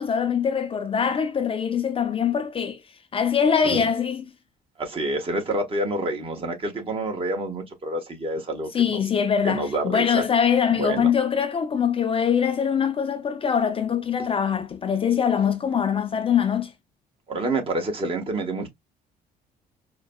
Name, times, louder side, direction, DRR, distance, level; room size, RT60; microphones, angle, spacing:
voice 1, 0.0-2.8 3.1-4.2 8.7-16.7, left 7 dB, 35° left, 0.6 m, -23 dB
voice 2, 4.8-9.0 9.4-10.2 10.7-11.1 14.2-14.3 17.3-18.7, right 2 dB, 35° right, 1.4 m, -28 dB
4.6 x 2.2 x 2.3 m
cardioid pair, 110°, 17 cm